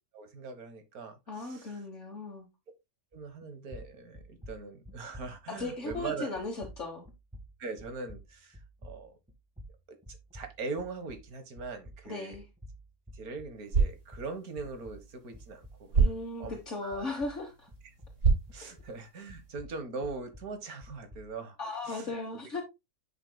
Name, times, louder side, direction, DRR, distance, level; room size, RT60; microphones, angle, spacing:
voice 1, 0.1-1.8 3.1-6.3 7.6-9.1 10.1-12.4 13.1-16.1 16.4-17.1 18.5-21.6 21.8-22.1, right 4 dB, 80° right, 1.8 m, -41 dB
voice 2, 1.3-2.5 5.5-7.1 12.1-12.5 16.0-17.7 18.6-18.7 21.6-22.6, left 3 dB, 55° left, 1.7 m, -37 dB
sound 1, 3.1-3.4 3.7-11.3 11.6-15.9 16.1-19.0 19.3-21.3, equal, 5° right, 1.4 m, -50 dB
sound 2, 13.5-19.6, right 5 dB, 55° right, 2.1 m, -32 dB
9.8 x 5.9 x 2.2 m
omnidirectional pair, 1.5 m